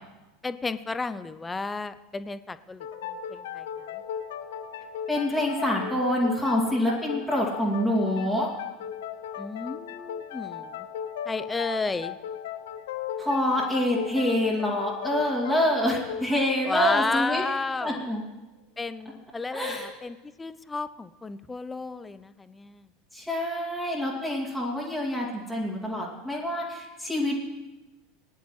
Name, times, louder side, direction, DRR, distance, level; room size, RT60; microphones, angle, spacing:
voice 1, 0.4-4.0 9.4-10.9 11.3-12.2 16.6-18.1 18.8-22.9, left 3 dB, 15° left, 14 dB, 0.5 m, -32 dB
sound 1, 2.8-18.1, left 9 dB, 60° left, 0.5 m, -37 dB
voice 2, 5.1-8.5 13.2-17.4 17.8-18.2 19.5-19.9 23.1-27.3, left 1 dB, ahead, -5 dB, 2.4 m, -26 dB
20.0 x 10.5 x 3.2 m, 1.1 s
figure-of-eight pair, 75°, 0 cm